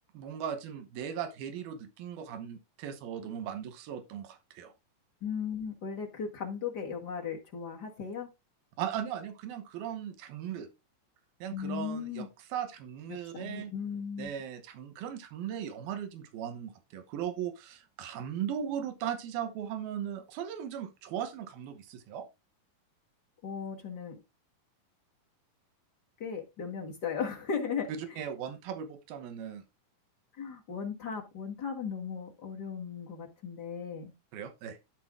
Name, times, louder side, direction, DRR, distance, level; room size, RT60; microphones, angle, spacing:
voice 1, 0.1-4.7 8.8-10.7 11.4-13.7 14.2-22.3 28.2-29.6 34.3-34.8, right 9 dB, 90° right, 3.0 m, -38 dB
voice 2, 5.2-8.3 11.5-12.3 13.1-14.3 23.4-24.2 26.2-27.9 30.4-34.1, left 6 dB, 45° left, 1.4 m, -37 dB
12.5 x 4.6 x 3.7 m
omnidirectional pair, 4.2 m